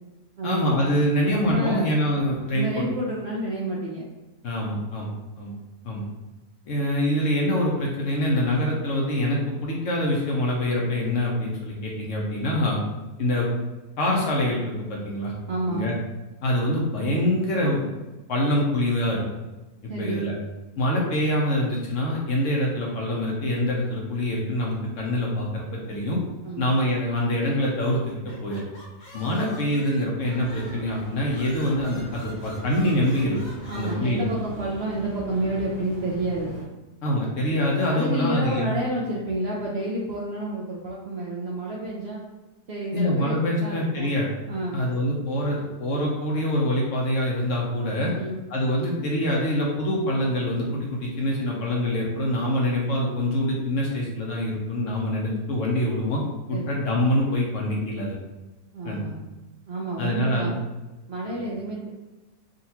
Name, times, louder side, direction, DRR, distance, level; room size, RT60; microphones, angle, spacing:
voice 1, 0.4-2.9 4.4-5.5 5.8-6.0 6.7-12.8 13.2-13.5 14.0-15.3 15.7-15.9 16.4-17.9 18.3-19.2 20.0-20.3 20.8-26.2 26.6-28.7 29.1-33.4 33.7-34.3 37.0-38.8 42.9-44.3 44.7-48.1 48.5-56.2 56.5-58.2 58.8-59.1 60.0-60.5 61.3-61.4, left 1 dB, 60° left, -2 dB, 1.0 m, -25 dB
voice 2, 1.5-1.8 2.5-4.0 15.5-15.9 19.9-20.3 26.4-26.7 33.7-36.5 37.9-42.2 42.7-44.1 44.5-44.8 48.1-48.4 56.5-56.7 58.7-59.2 59.7-60.5 61.1-61.9, right 1 dB, 65° right, -4 dB, 0.6 m, -30 dB
sound 1, 28.1-30.9 31.3-33.9, left 1 dB, 45° left, 1.1 m, -46 dB
sound 2, 30.4-36.6, right 1 dB, 10° right, 1.4 m, -40 dB
3.8 x 2.5 x 2.8 m, 1.1 s
omnidirectional pair, 1.6 m